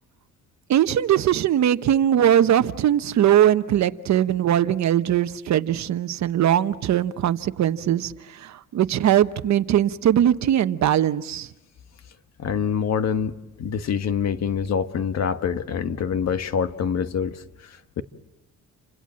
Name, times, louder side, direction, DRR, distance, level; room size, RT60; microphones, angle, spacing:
voice 1, 0.7-11.5, right 11 dB, 60° right, 1.1 m, -20 dB
voice 2, 12.4-18.0, left 7 dB, 55° left, 1.5 m, -26 dB
29.5 x 26.0 x 7.6 m
cardioid pair, 110°, 31 cm